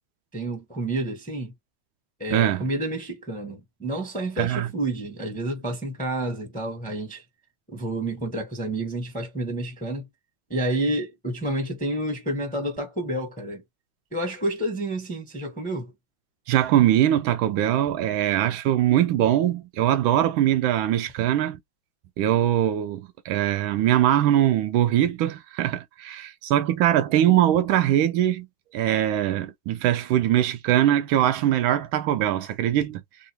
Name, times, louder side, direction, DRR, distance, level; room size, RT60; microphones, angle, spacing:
voice 1, 0.3-1.5 2.2-7.2 7.7-10.1 10.5-13.6 14.1-15.9, right 1 dB, 5° left, 0.7 m, -29 dB
voice 2, 2.3-2.7 4.4-4.7 16.5-21.6 22.2-28.5 28.7-33.0, right 12 dB, 80° right, 1.4 m, -22 dB
3.6 x 2.5 x 2.9 m
omnidirectional pair, 2.3 m